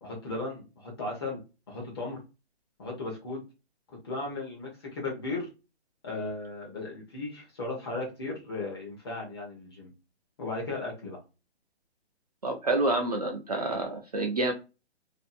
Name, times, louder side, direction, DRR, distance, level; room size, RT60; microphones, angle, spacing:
voice 1, 0.0-1.4 1.7-2.2 2.8-3.4 4.0-5.5 6.0-9.9 10.4-11.2, left 3 dB, 25° left, -2 dB, 0.7 m, -36 dB
voice 2, 12.4-14.5, right 2 dB, 40° right, 2 dB, 0.4 m, -28 dB
2.6 x 2.4 x 2.4 m, 0.28 s
hypercardioid pair, 165°, 33 cm